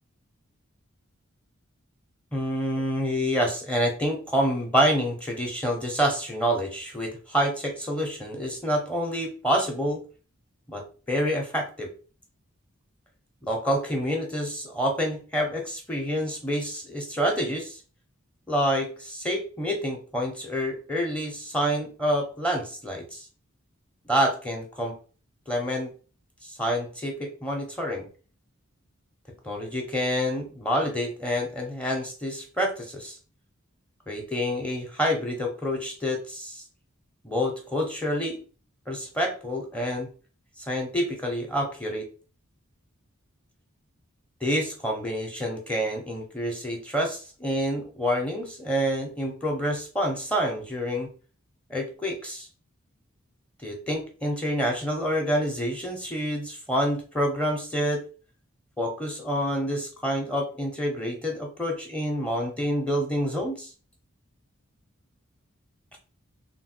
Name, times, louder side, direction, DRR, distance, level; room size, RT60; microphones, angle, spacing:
voice 1, 2.3-10.0 10.7-11.9 13.4-17.8 18.5-23.3 24.1-24.9 25.5-25.9 26.4-28.1 29.4-33.2 34.1-36.6 37.2-38.4 38.9-40.1 40.7-42.0 44.4-51.1 51.7-52.5 53.6-58.0 58.8-63.7, equal, 5° left, 1 dB, 0.7 m, -27 dB
3.5 x 2.3 x 4.3 m, 0.38 s
head